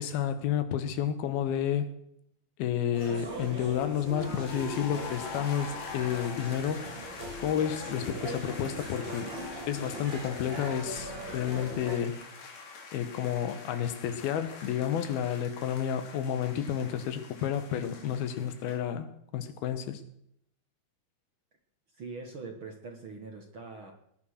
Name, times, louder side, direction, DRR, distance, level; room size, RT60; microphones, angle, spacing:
voice 1, 0.0-1.9 2.6-6.9 7.4-9.3 9.7-12.2 12.9-20.0, left 9 dB, 75° left, 10 dB, 3.0 m, -31 dB
sound 1, 2.9-12.0, right 1 dB, 30° right, 4.5 m, -40 dB
sound 2, 4.2-18.8, left 4 dB, 50° left, 3.2 m, -45 dB
voice 2, 22.0-23.9, right 4 dB, 55° right, 3 dB, 1.4 m, -42 dB
21.0 x 9.7 x 6.5 m, 0.73 s
omnidirectional pair, 4.5 m